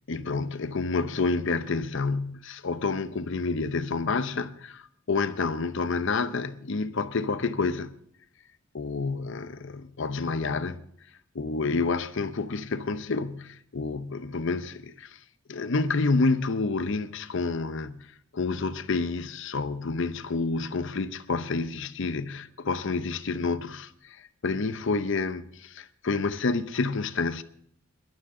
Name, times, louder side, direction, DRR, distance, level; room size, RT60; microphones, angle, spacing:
voice 1, 0.1-7.9 8.7-10.8 11.3-15.2 15.5-18.1 18.3-27.4, left 3 dB, 60° left, 0.7 m, -29 dB
22.0 x 12.0 x 3.7 m
head